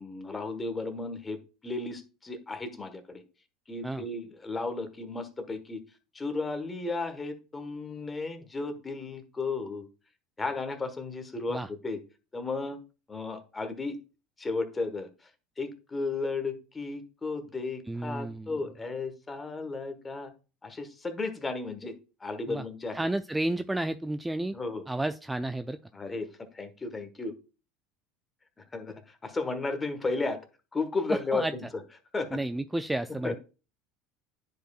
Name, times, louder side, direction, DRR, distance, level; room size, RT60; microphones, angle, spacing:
voice 1, 0.0-1.4 1.6-3.2 3.7-5.8 6.1-9.9 10.4-12.0 12.3-12.8 13.1-14.0 14.4-15.1 15.6-20.3 20.6-23.0 24.5-24.9 25.9-26.3 26.5-27.3 28.6-30.4 30.7-31.6 32.1-32.4 33.2-33.3, left 3 dB, 20° left, 9 dB, 1.3 m, -34 dB
voice 2, 17.9-18.6 22.5-22.7 22.9-24.6 24.9-25.8 31.1-31.5 32.3-33.4, right 1 dB, 10° right, 11 dB, 0.3 m, -31 dB
10.0 x 4.9 x 2.4 m, 0.33 s
hypercardioid pair, 85°, 0 cm